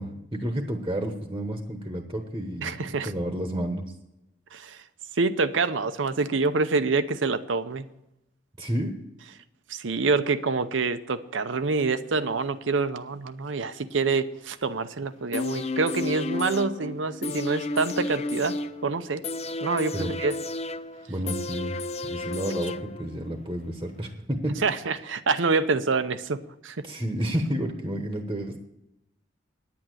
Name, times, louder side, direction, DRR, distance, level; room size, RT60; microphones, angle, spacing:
voice 1, 0.0-3.9 8.6-8.9 19.9-20.1 21.1-24.6 26.8-28.6, right 1 dB, 20° right, 4 dB, 1.1 m, -31 dB
voice 2, 2.6-3.1 4.5-4.8 5.1-7.9 9.7-18.6 18.8-19.2 19.6-20.3 24.6-26.8, right 4 dB, 90° right, 11 dB, 0.7 m, -26 dB
sound 1, 15.3-23.3 23.6-23.7, left 2 dB, 35° left, 0.5 m, -32 dB
10.0 x 8.5 x 7.8 m, 0.90 s
head